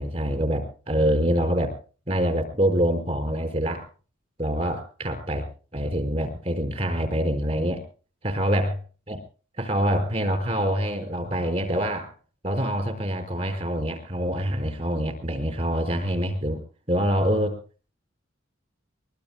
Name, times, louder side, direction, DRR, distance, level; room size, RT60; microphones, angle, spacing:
voice 1, 0.0-1.8 2.1-3.9 4.4-7.8 8.2-8.8 9.1-9.2 9.6-12.1 12.4-16.6 16.9-17.6, equal, 35° right, 6 dB, 4.6 m, -25 dB
23.5 x 21.5 x 2.2 m, 0.37 s
head